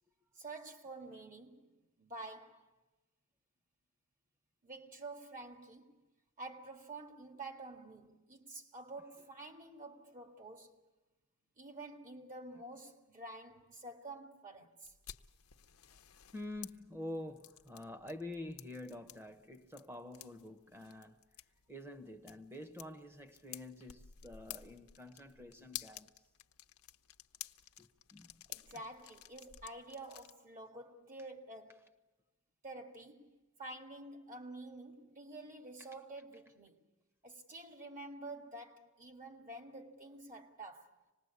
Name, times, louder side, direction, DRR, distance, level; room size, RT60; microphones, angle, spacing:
voice 1, 0.3-2.7 4.6-6.0 6.4-10.8 11.6-14.9 28.5-32.0 32.6-36.8 37.2-41.0, right 2 dB, 40° right, 2.1 m, -49 dB
sound 1, 14.8-30.3, left 13 dB, 90° left, 0.8 m, -53 dB
voice 2, 16.3-21.2 21.7-26.1 27.8-28.5, left 1 dB, 10° right, 1.3 m, -47 dB
26.0 x 19.5 x 8.3 m
head